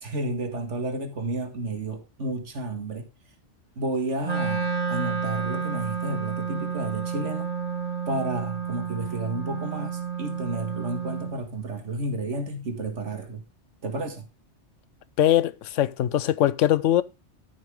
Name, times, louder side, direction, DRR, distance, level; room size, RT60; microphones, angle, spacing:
voice 1, 0.0-3.1 3.8-7.5 8.1-13.4 13.8-14.3, right 2 dB, 70° right, 2.1 m, -31 dB
Wind instrument woodwind instrument, 4.2-11.4, right 6 dB, 35° right, 1.8 m, -30 dB
voice 2, 15.2-17.0, left 12 dB, 85° left, 1.0 m, -21 dB
13.0 x 6.1 x 3.6 m
omnidirectional pair, 1.2 m